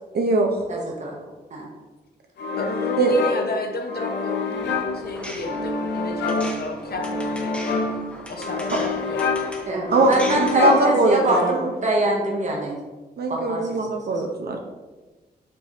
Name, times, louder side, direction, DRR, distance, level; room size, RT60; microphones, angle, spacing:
voice 1, 0.1-0.5 3.0-3.1 9.9-11.7 13.2-14.6, right 2 dB, 65° right, 2 dB, 0.6 m, -21 dB
voice 2, 0.7-1.1 1.5-1.7 9.7-12.8 13.3-13.8, right 2 dB, 40° right, -1 dB, 0.9 m, -24 dB
sound 1, 2.4-11.9, left 4 dB, 90° left, 0.5 m, -27 dB
voice 3, 2.5-7.8 8.3-9.2 13.7-13.8, left 2 dB, 60° left, 3 dB, 0.8 m, -32 dB
sound 2, 4.5-10.7, equal, 5° left, 0.8 m, -39 dB
5.3 x 3.3 x 2.8 m, 1.2 s
cardioid pair, 70°, 18 cm